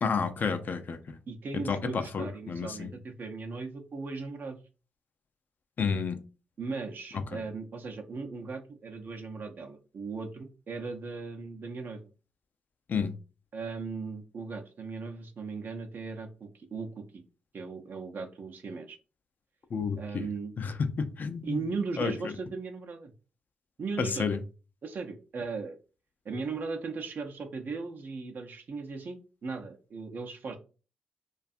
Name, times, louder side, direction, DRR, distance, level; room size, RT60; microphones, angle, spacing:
voice 1, 0.0-1.2 1.7-2.9 5.8-6.2 7.3-7.4 12.9-13.1 19.7-20.2 20.6-21.6 22.0-22.1 24.0-24.4, left 5 dB, 50° left, 8 dB, 0.4 m, -30 dB
voice 2, 1.3-4.6 6.6-12.1 13.5-17.2 17.5-19.0 20.0-20.5 21.4-23.1 23.8-24.3 24.8-25.8 26.2-30.6, right 4 dB, 55° right, 4 dB, 0.5 m, -37 dB
2.6 x 2.3 x 2.4 m, 0.34 s
supercardioid pair, 50°, 4 cm